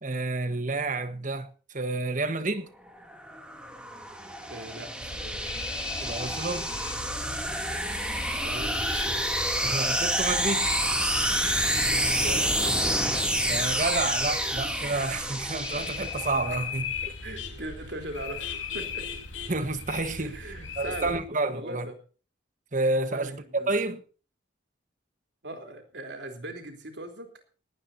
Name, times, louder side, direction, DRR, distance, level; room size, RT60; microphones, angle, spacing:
voice 1, 0.0-2.7 6.0-6.7 9.6-10.7 13.5-17.1 19.5-21.9 22.7-24.0, right 2 dB, 40° right, 1.4 m, -30 dB
sound 1, 3.0-16.5, equal, 5° right, 2.8 m, -28 dB
voice 2, 4.5-5.6 8.4-9.3 11.8-13.2 17.2-19.1 20.2-21.9 23.1-23.7 25.4-27.3, right 1 dB, 60° right, 3.8 m, -40 dB
sound 2, 5.0-21.2, left 4 dB, 85° left, 4.2 m, -39 dB
19.0 x 18.0 x 2.8 m
head